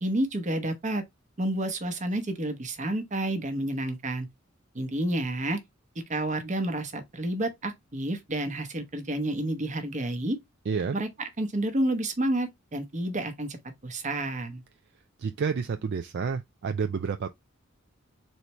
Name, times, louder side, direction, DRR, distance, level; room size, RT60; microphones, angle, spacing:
voice 1, 0.0-1.0 1.4-4.3 4.7-5.6 6.1-10.4 10.9-13.6 13.8-14.6, right 1 dB, 35° right, 0.9 m, -30 dB
voice 2, 10.7-11.0 15.2-17.3, right 5 dB, 55° right, 0.4 m, -29 dB
4.1 x 3.0 x 3.2 m
head